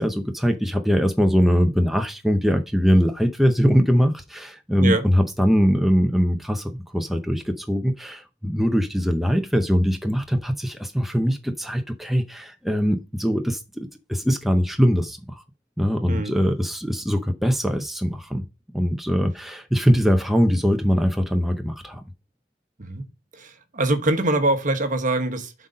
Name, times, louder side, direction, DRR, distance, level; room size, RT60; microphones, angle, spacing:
voice 1, 0.0-15.4 15.8-18.4 18.7-22.0, equal, ahead, 0.6 m, -22 dB
voice 2, 23.3-25.5, right 2 dB, 45° right, 1.1 m, -23 dB
7.7 x 4.0 x 5.4 m
head